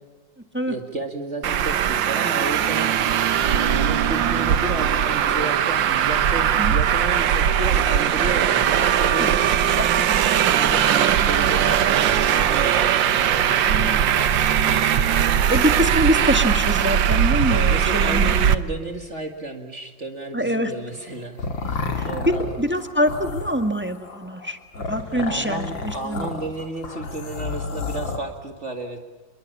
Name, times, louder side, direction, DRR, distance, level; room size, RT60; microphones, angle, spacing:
voice 1, 0.7-3.0 3.5-9.5 10.4-14.4 14.7-15.4 15.9-16.1 17.5-22.5 25.1-29.0, right 2 dB, 40° right, 5 dB, 2.3 m, -32 dB
Traffic noise roadway noise, 1.4-18.5, right 9 dB, 80° right, 1.7 m, -20 dB
voice 2, 9.7-10.9 11.1-11.3 13.7-14.0 15.5-18.3 20.3-20.7 21.9-22.1 22.6-26.3, equal, 5° right, 7 dB, 1.7 m, -25 dB
sound 1, 20.9-28.2, left 3 dB, 85° left, 3.0 m, -31 dB
28.5 x 22.5 x 7.3 m, 1.3 s
omnidirectional pair, 2.0 m